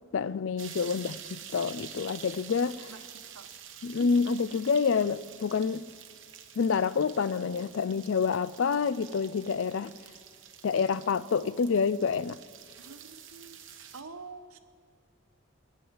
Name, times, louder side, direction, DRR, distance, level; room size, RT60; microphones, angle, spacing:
voice 1, 0.1-2.9 3.8-5.8 6.6-9.9 10.6-12.4, left 5 dB, 65° left, 0.4 m, -28 dB
sound 1, 0.6-14.0, right 9 dB, 60° right, 0.9 m, -48 dB
voice 2, 2.9-3.5 12.8-13.6 13.9-14.6, right 4 dB, 85° right, 1.0 m, -47 dB
19.0 x 7.5 x 9.4 m
head